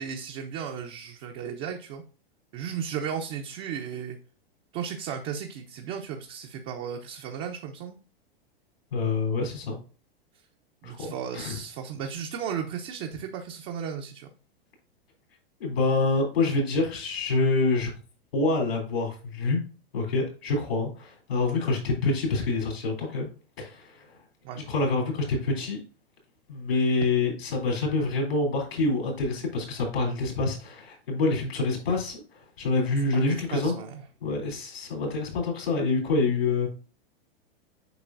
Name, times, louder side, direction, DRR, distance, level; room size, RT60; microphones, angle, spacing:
voice 1, 0.0-2.0 2.5-4.2 4.7-8.0 10.8-14.3 24.4-24.6 33.1-34.0, right 7 dB, 40° right, 3 dB, 0.8 m, -35 dB
voice 2, 8.9-9.7 10.8-11.5 15.6-17.9 18.3-19.6 19.9-23.3 23.6-24.1 24.5-25.8 26.5-32.2 32.6-33.7 34.2-36.7, left 3 dB, 80° left, 1 dB, 3.3 m, -26 dB
8.0 x 5.3 x 2.6 m, 0.37 s
hypercardioid pair, 110°, 30 cm